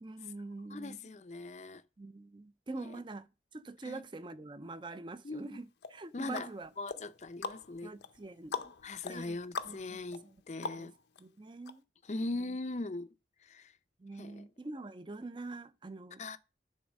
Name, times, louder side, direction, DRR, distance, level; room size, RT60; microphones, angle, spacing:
voice 1, 0.0-1.0 2.0-6.7 7.8-8.7 9.1-9.4 9.6-10.4 10.7-10.9 11.2-11.8 14.0-16.2, right 2 dB, 25° right, 0.5 m, -45 dB
voice 2, 0.7-1.8 2.8-3.0 3.8-4.0 5.2-5.6 6.1-6.5 6.8-7.9 8.8-10.9 12.0-13.1 13.4-13.7 14.1-14.5 16.2-16.4, left 2 dB, 40° left, 0.5 m, -40 dB
sound 1, 5.8-11.2 11.7-11.8, left 4 dB, 80° left, 0.6 m, -43 dB
10.5 x 4.0 x 6.3 m
head